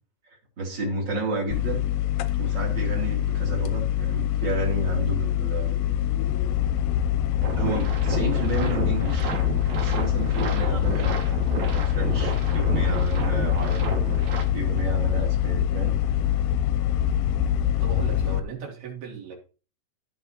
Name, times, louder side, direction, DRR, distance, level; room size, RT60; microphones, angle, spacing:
voice 1, 0.6-1.8 2.4-5.8 7.6-9.3 9.7-13.9 14.5-16.0, right 2 dB, 30° right, 0 dB, 3.5 m, -31 dB
sound 1, 1.5-18.4, left 11 dB, 75° left, 2.3 m, -24 dB
sound 2, 7.4-14.4, right 4 dB, 50° right, 3.1 m, -32 dB
voice 2, 17.8-19.4, right 5 dB, 70° right, -1 dB, 5.0 m, -37 dB
16.5 x 6.6 x 3.0 m, 0.35 s
omnidirectional pair, 4.6 m